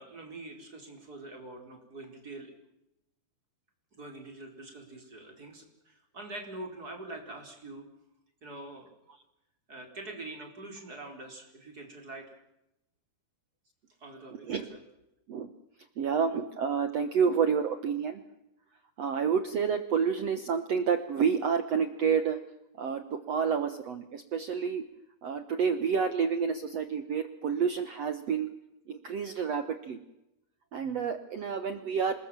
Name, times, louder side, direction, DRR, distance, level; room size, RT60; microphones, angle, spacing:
voice 1, 0.0-2.5 3.9-7.9 8.4-8.9 9.7-12.3 14.0-14.8, right 2 dB, 25° right, 2 dB, 4.8 m, -44 dB
voice 2, 16.0-18.2 19.0-22.4 22.8-24.8 25.2-28.5 28.9-30.0 30.7-32.1, right 6 dB, 65° right, 9 dB, 1.6 m, -29 dB
27.5 x 20.5 x 7.4 m, 0.89 s
omnidirectional pair, 4.6 m